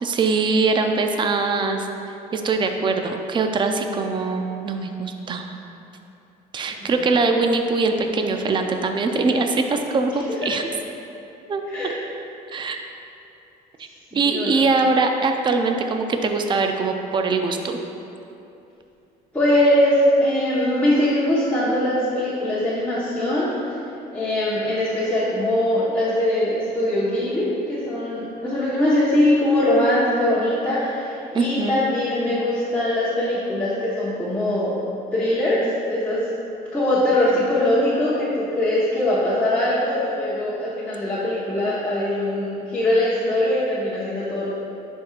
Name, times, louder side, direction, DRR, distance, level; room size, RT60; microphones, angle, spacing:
voice 1, 0.0-1.9 2.3-5.5 6.5-10.7 11.5-11.6 12.5-12.8 14.1-17.8 31.3-31.8, right 3 dB, 30° right, 5 dB, 0.5 m, -22 dB
voice 2, 14.1-14.5 19.3-23.5 24.1-34.8 35.1-35.6 35.9-36.2 36.7-44.6, left 1 dB, 10° left, -11 dB, 1.2 m, -21 dB
10.5 x 4.5 x 2.4 m, 2.8 s
cardioid pair, 110°, 17 cm